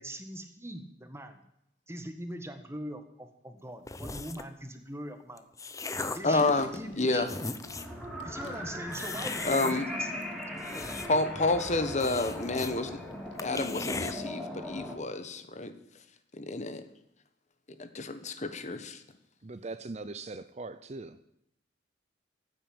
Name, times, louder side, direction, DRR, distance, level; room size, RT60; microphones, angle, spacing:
voice 1, 0.0-1.4 1.9-5.4 6.1-7.2 8.2-10.4, right 1 dB, 15° right, 1.6 m, -41 dB
sound 1, 3.9-4.5 5.2-6.4 6.9-7.0 7.2-8.0 8.9-9.7 10.4-11.3 11.6-11.7 12.0-12.7 13.1-13.2 13.4-14.1, left 3 dB, 20° left, 0.8 m, -37 dB
sound 2, 5.9-14.3, left 2 dB, 90° left, 1.9 m, -50 dB
voice 2, 6.2-6.7 7.0-7.3 9.5-9.8 11.1-13.0 13.4-15.7 16.3-16.8 17.8-19.0, left 2 dB, 40° left, 1.3 m, -29 dB
sound 3, 7.6-14.9, left 1 dB, ahead, 3.2 m, -39 dB
voice 3, 19.4-21.2, right 3 dB, 35° right, 0.6 m, -40 dB
15.0 x 9.3 x 8.9 m
head